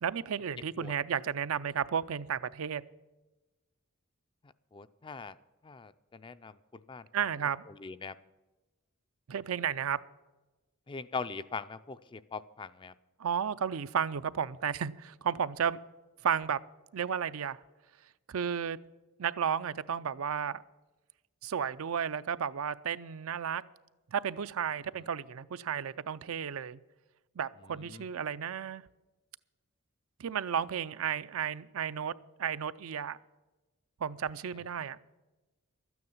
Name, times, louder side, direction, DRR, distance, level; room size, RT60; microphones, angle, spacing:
voice 1, 0.0-2.8 7.1-7.6 9.3-10.0 13.2-15.8 16.2-16.6 16.9-17.6 18.3-18.8 19.2-20.6 21.4-23.6 24.1-26.8 27.4-28.8 30.2-32.1 32.4-33.2 34.0-35.0, right 7 dB, 70° right, 0.5 m, -33 dB
voice 2, 4.7-5.4 5.6-7.1 7.7-8.1 10.9-12.9 27.8-28.0, left 4 dB, 20° left, 0.4 m, -41 dB
13.0 x 9.4 x 7.1 m
head